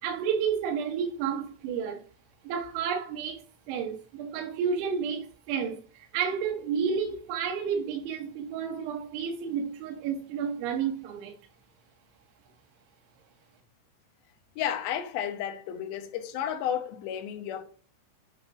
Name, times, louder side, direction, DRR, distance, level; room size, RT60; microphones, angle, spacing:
voice 1, 0.0-2.0 2.4-11.3, right 7 dB, 85° right, 3.4 m, -31 dB
voice 2, 14.6-17.6, left 9 dB, 75° left, 2.3 m, -32 dB
9.4 x 3.2 x 5.1 m
omnidirectional pair, 5.3 m